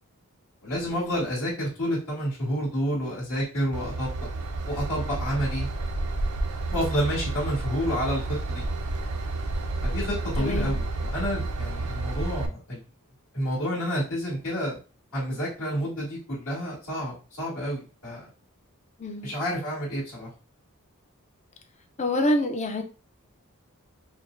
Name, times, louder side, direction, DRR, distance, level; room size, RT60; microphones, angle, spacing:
voice 1, 0.6-4.3 4.7-5.7 6.7-8.6 9.8-12.8 13.3-14.8 15.1-18.3 19.2-20.3, equal, 65° left, -8 dB, 2.0 m, -29 dB
Train / Engine, 3.7-12.5, right 2 dB, 85° right, 0.5 m, -30 dB
voice 2, 10.4-10.7 19.0-19.3 22.0-22.8, left 1 dB, 30° left, 5 dB, 0.5 m, -26 dB
5.0 x 2.1 x 2.5 m, 0.34 s
head